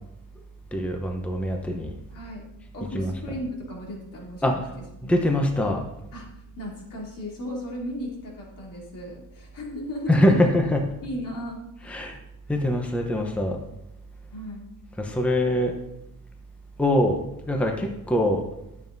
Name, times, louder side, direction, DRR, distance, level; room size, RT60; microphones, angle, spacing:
voice 1, 0.7-2.0 2.9-3.4 4.4-4.7 5.0-5.8 10.1-10.9 11.8-12.2 12.5-13.6 15.0-15.7 16.8-18.4, left 1 dB, 5° left, 2 dB, 0.8 m, -23 dB
voice 2, 2.1-2.5 2.7-4.6 5.0-5.2 6.1-10.4 11.0-12.0 14.3-14.7, equal, 65° left, -3 dB, 3.0 m, -36 dB
12.0 x 7.1 x 2.7 m, 0.88 s
cardioid pair, 115°, 36 cm